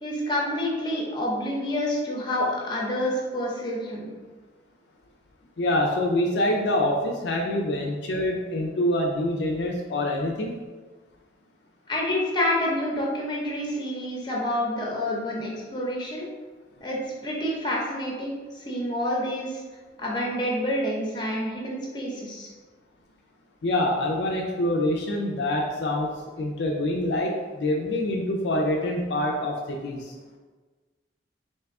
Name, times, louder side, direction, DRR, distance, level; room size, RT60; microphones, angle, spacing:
voice 1, 0.0-4.1 11.9-16.3 16.8-18.3 18.7-19.6 20.0-22.5, left 1 dB, 25° left, -3 dB, 0.7 m, -28 dB
voice 2, 5.6-10.6 23.6-30.1, left 1 dB, 60° left, 0 dB, 0.4 m, -26 dB
3.5 x 2.7 x 3.5 m, 1.3 s
head